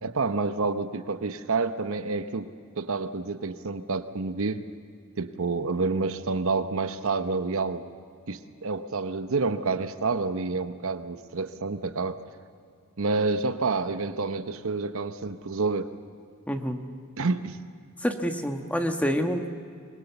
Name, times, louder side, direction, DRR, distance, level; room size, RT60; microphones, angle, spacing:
voice 1, 0.0-4.7 5.2-7.9 8.3-12.2 13.0-15.9 17.2-17.6, right 3 dB, 70° right, 10 dB, 0.9 m, -28 dB
voice 2, 16.5-16.8 18.0-19.6, equal, 5° left, 5 dB, 1.3 m, -27 dB
24.5 x 21.5 x 7.0 m, 2.3 s
head